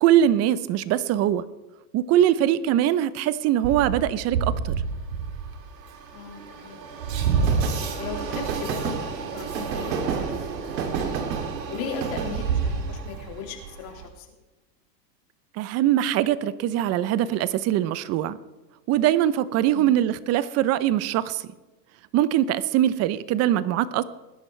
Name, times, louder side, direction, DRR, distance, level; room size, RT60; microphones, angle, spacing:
voice 1, 0.0-1.5 1.9-4.8 15.6-18.4 18.9-21.4 22.1-24.0, right 12 dB, 30° right, 17 dB, 0.7 m, -22 dB
Train, 3.6-14.0, right 5 dB, 80° right, 2.6 m, -28 dB
voice 2, 6.1-6.8 8.0-10.8 11.7-14.3 19.7-20.0, left 5 dB, 45° left, 2 dB, 3.0 m, -37 dB
20.0 x 10.5 x 3.3 m, 1.1 s
supercardioid pair, 130°, 49 cm